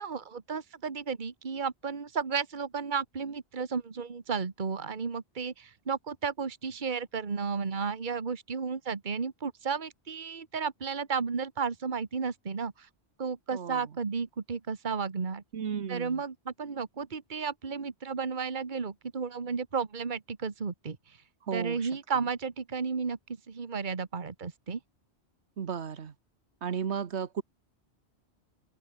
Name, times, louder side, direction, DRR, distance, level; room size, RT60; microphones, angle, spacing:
voice 1, 0.0-12.9 13.2-15.4 15.9-21.2 21.5-23.2 23.5-24.8, right 5 dB, 45° right, 1.6 m, -33 dB
voice 2, 13.5-13.9 15.5-16.2 21.5-21.9 25.6-26.1 26.6-27.4, right 7 dB, 85° right, 1.4 m, -34 dB
open air
omnidirectional pair, 1.1 m